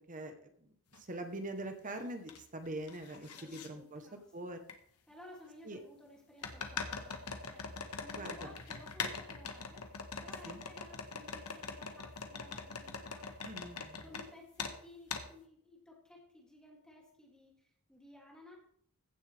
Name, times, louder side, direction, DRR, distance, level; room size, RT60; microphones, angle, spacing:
voice 1, 0.0-4.6 5.7-5.8 8.2-8.5 10.4-10.6 13.4-14.1, right 1 dB, 35° right, 7 dB, 1.1 m, -44 dB
sound 1, 0.9-1.0 1.6-2.4 2.6-3.7 4.7-4.8 6.4-14.3 14.6-14.8 15.1-15.3, left 5 dB, 85° left, 1.3 m, -42 dB
voice 2, 3.3-4.5 5.1-9.9 10.2-13.3 14.0-18.6, left 1 dB, 5° left, -2 dB, 2.8 m, -57 dB
15.5 x 7.4 x 3.5 m, 0.62 s
head